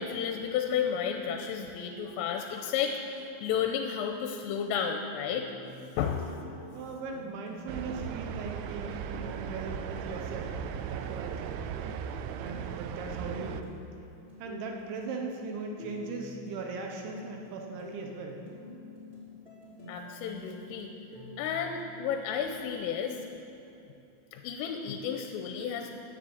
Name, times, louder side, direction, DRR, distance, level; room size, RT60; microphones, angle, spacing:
voice 1, 0.0-5.5 6.0-6.3 19.9-20.9 21.4-23.2 24.3-25.9, left 7 dB, 85° left, 3 dB, 3.3 m, -32 dB
sound 1, 5.3-23.2, left 1 dB, 10° right, 3.5 m, -48 dB
voice 2, 6.7-10.6 10.9-11.6 12.4-13.7 14.4-18.4, right 4 dB, 75° right, 2 dB, 3.1 m, -39 dB
sound 2, 7.7-13.6, right 8 dB, 90° right, 2.7 m, -37 dB
11.0 x 10.0 x 8.5 m, 2.9 s
omnidirectional pair, 5.9 m